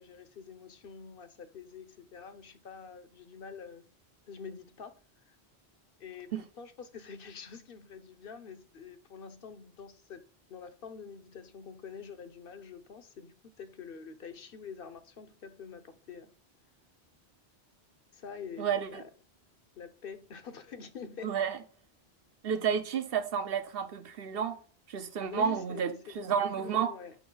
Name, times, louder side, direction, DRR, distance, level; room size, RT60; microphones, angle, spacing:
voice 1, 0.0-3.8 4.3-5.0 5.3-5.4 6.0-6.3 6.6-10.2 10.5-16.3 18.1-19.1 19.8-21.4 25.3-26.3 26.6-27.2, left 6 dB, 60° left, 1.1 m, -46 dB
voice 2, 18.6-19.0 21.2-21.6 22.4-24.6 24.9-26.9, right 7 dB, 65° right, 1.1 m, -31 dB
9.3 x 6.0 x 3.9 m
omnidirectional pair, 1.1 m